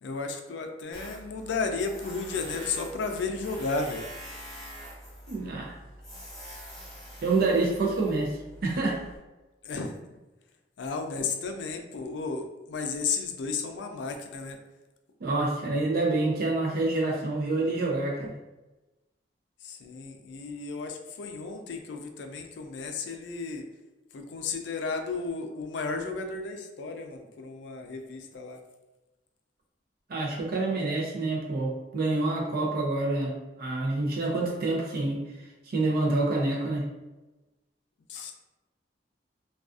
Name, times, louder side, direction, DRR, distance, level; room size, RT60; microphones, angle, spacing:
voice 1, 0.0-4.0 9.6-9.9 10.8-14.6 19.6-23.6 24.1-28.6 38.1-38.3, left 4 dB, 80° left, 5 dB, 0.4 m, -33 dB
Tools, 0.9-9.2, equal, 5° left, 0.8 m, -45 dB
voice 2, 5.3-5.8 7.2-9.1 15.2-18.4 30.1-33.3 33.6-35.2 35.7-36.8, right 2 dB, 55° right, -1 dB, 0.5 m, -27 dB
2.4 x 2.3 x 2.4 m, 1.1 s
head